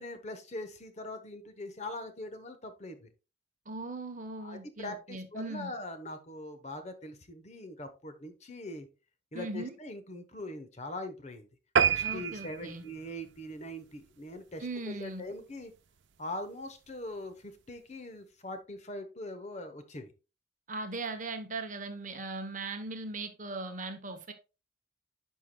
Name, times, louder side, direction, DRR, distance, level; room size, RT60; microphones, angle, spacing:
voice 1, 0.0-3.1 4.4-8.9 9.3-11.5 11.8-15.7 16.2-20.1, left 1 dB, 35° left, 0.9 m, -42 dB
voice 2, 3.7-5.7 9.3-9.7 12.0-12.8 14.6-15.2 20.7-24.3, right 3 dB, 40° right, 0.9 m, -39 dB
sound 1, 11.8-14.5 15.0-15.2 15.6-15.7 16.0-16.1 16.4-16.5, right 7 dB, 70° right, 0.6 m, -30 dB
11.0 x 4.7 x 2.2 m
head